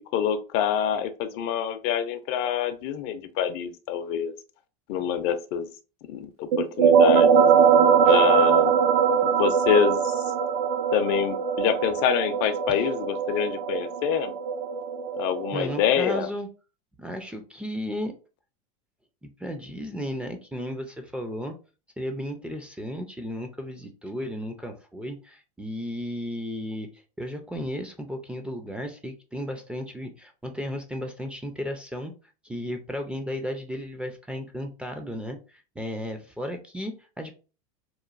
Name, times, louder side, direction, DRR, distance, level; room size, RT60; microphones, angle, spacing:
voice 1, 0.0-4.3 4.9-5.7 6.1-7.5 8.0-8.8 9.2-10.3 10.9-14.3 15.2-16.3, left 9 dB, 55° left, 10 dB, 0.5 m, -26 dB
sound 1, 6.5-15.9, right 7 dB, 75° right, 0.4 m, -21 dB
voice 2, 15.5-16.5 17.0-18.1 19.2-21.6 22.0-32.1 32.4-37.3, equal, 5° right, 5 dB, 0.3 m, -34 dB
3.0 x 2.2 x 2.4 m, 0.34 s
supercardioid pair, 115°, 19 cm